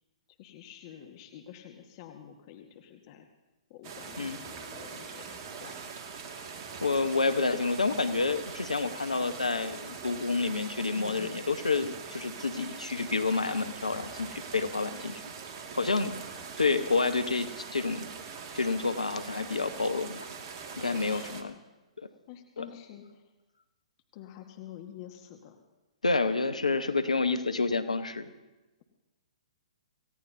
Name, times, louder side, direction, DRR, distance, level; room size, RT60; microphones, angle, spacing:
voice 1, 0.4-3.2 3.7-5.9 10.9-11.5 20.8-21.6 22.3-23.2 24.1-25.6, left 10 dB, 40° left, 4 dB, 1.4 m, -48 dB
sound 1, 3.8-21.4, right 5 dB, 40° right, 2.0 m, -43 dB
voice 2, 6.8-15.2 15.7-16.2 16.6-18.1 18.5-20.3 20.8-21.5 22.6-22.7 26.0-28.3, left 3 dB, 85° left, 11 dB, 1.0 m, -29 dB
27.0 x 16.5 x 2.7 m, 1.1 s
figure-of-eight pair, 120°, 4 cm